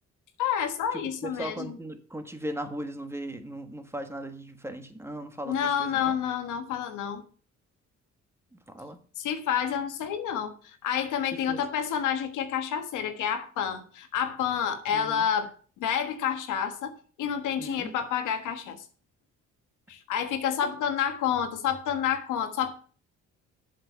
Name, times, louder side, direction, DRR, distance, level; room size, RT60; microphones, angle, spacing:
voice 1, 0.4-1.8 5.5-7.2 9.2-15.5 15.8-18.8 19.9-22.7, left 8 dB, 85° left, 1.5 m, -29 dB
voice 2, 0.9-6.1 8.5-9.0 11.5-11.6 14.9-15.3 17.6-18.0, right 1 dB, 10° right, 1.5 m, -38 dB
7.8 x 6.5 x 6.3 m
cardioid pair, 90°, 30 cm